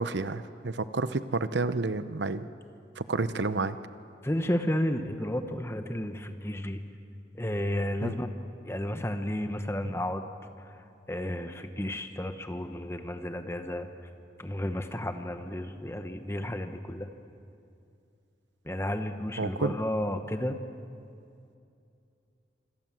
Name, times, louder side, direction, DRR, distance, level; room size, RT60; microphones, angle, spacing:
voice 1, 0.0-2.5 3.0-3.8 8.0-8.1 19.4-19.7, right 3 dB, 85° right, 12 dB, 0.9 m, -30 dB
voice 2, 4.2-6.8 7.3-8.3 8.6-10.3 10.6-10.7 11.1-13.9 14.4-17.1 18.6-20.6, left 1 dB, 15° left, 7 dB, 1.2 m, -32 dB
26.0 x 26.0 x 7.6 m, 2.5 s
head